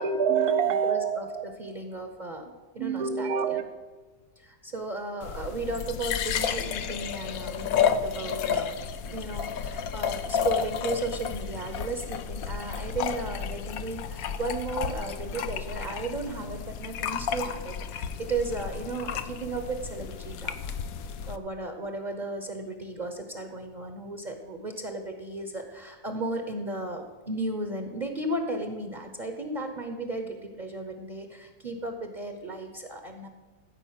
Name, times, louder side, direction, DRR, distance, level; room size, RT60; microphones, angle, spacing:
voice 1, 0.0-1.7 2.8-3.6, right 6 dB, 70° right, 9 dB, 1.4 m, -26 dB
voice 2, 0.8-1.3 1.6-3.6 4.4-8.7 9.0-20.7 21.3-33.3, right 2 dB, 35° right, 5 dB, 1.0 m, -35 dB
sound 1, 5.2-21.4, left 7 dB, 70° left, 1.1 m, -32 dB
14.5 x 5.5 x 8.8 m, 1.3 s
omnidirectional pair, 1.7 m